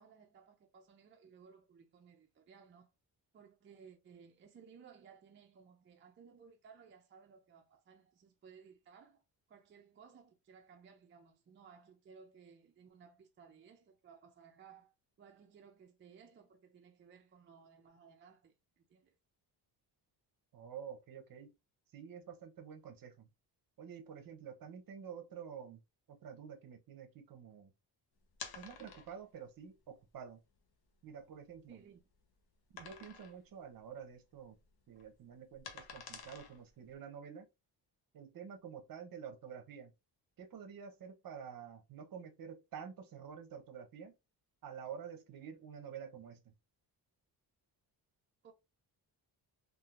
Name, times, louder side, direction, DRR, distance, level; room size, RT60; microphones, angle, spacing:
voice 1, 0.0-2.9 3.3-9.2 9.5-19.1 31.7-32.0 48.4-48.5, right 6 dB, 30° right, 0.4 m, -60 dB
voice 2, 20.5-21.5 21.9-23.3 23.8-25.8 26.1-27.7 28.5-30.4 31.0-31.8 32.7-34.6 34.9-37.5 38.1-39.9 40.4-44.1 44.6-46.5, right 7 dB, 55° right, 0.8 m, -49 dB
sound 1, 28.3-29.3 30.0-30.1 30.6-30.7 31.1-32.1 32.8-33.5 33.8-34.0 34.3-36.9, left 6 dB, 60° left, 0.8 m, -50 dB
3.6 x 2.5 x 2.4 m
cardioid pair, 140°, 42 cm